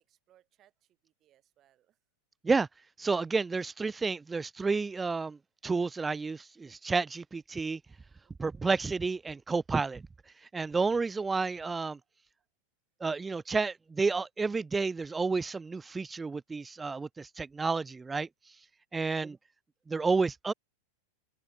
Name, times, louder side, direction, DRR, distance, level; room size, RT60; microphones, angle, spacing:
voice 1, 0.0-2.0 7.9-8.0 8.2-8.6 12.0-12.5, right 12 dB, 30° right, 7.3 m, -69 dB
voice 2, 3.0-7.8 8.4-10.0 10.5-12.0 13.0-18.3 18.9-19.4 19.9-20.5, right 4 dB, 10° right, 0.3 m, -30 dB
open air
figure-of-eight pair, 90°, 0 cm